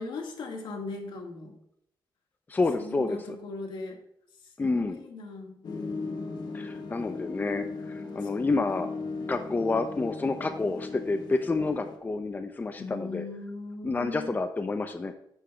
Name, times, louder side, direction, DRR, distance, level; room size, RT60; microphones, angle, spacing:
voice 1, 0.0-1.5 2.8-4.0 4.6-5.6 8.1-8.5 12.8-14.3, left 3 dB, 80° left, 1 dB, 1.9 m, -39 dB
voice 2, 2.5-3.4 4.6-5.0 6.5-8.9 9.3-13.3 13.8-15.1, left 3 dB, 20° left, 7 dB, 0.6 m, -29 dB
sound 1, 5.6-12.0, left 3 dB, 60° left, 1.4 m, -37 dB
10.0 x 3.4 x 7.0 m, 0.72 s
wide cardioid pair, 130°, 8 cm